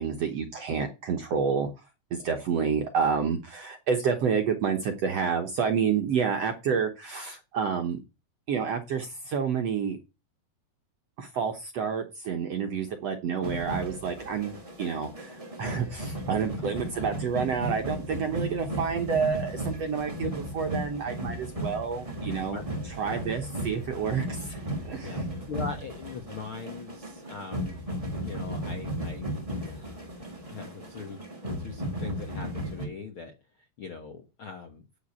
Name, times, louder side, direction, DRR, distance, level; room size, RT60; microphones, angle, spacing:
voice 1, 0.0-1.7 2.1-8.0 8.5-10.0 11.2-22.6 23.0-24.6 24.8-25.2, right 6 dB, 65° right, 5 dB, 1.6 m, -29 dB
sound 1, 13.4-32.9, right 1 dB, 15° right, 1.5 m, -35 dB
voice 2, 25.5-27.7 28.2-31.2 31.6-34.8, left 5 dB, 60° left, 4 dB, 1.4 m, -41 dB
9.4 x 7.2 x 8.5 m, 0.29 s
omnidirectional pair, 4.3 m